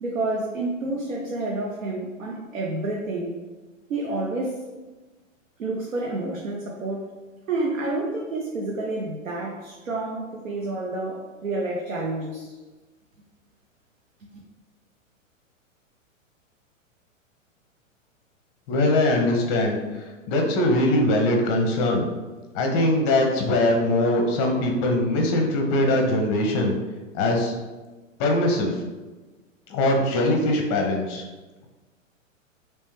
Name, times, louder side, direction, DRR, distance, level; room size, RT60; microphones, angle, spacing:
voice 1, 0.0-3.4 3.9-4.6 5.6-7.1 7.5-12.5 14.2-14.3, right 2 dB, 75° right, -2 dB, 0.7 m, -29 dB
voice 2, 18.7-22.1 22.5-26.8 27.1-27.5 28.2-28.7 29.7-31.2, left 1 dB, 25° left, 2 dB, 0.6 m, -22 dB
3.2 x 3.1 x 3.1 m, 1.2 s
figure-of-eight pair, 105°, 40 cm